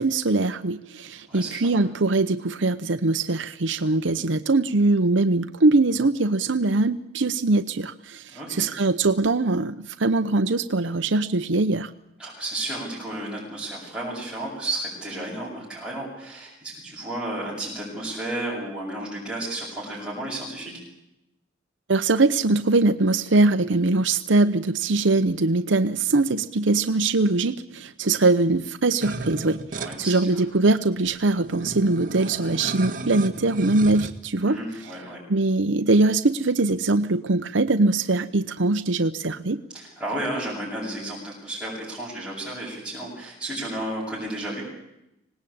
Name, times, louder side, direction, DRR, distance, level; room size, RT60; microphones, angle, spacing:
voice 1, 0.0-11.9 21.9-34.6 35.3-39.6, right 2 dB, 80° right, 9 dB, 0.8 m, -22 dB
voice 2, 1.3-1.8 8.3-8.7 12.2-20.7 29.7-30.4 34.4-35.2 39.7-44.6, right 1 dB, ahead, -9 dB, 7.9 m, -32 dB
sound 1, 29.0-30.0 30.7-30.8 31.0-34.1, right 3 dB, 45° right, 1.9 m, -34 dB
25.5 x 19.0 x 8.7 m, 0.87 s
head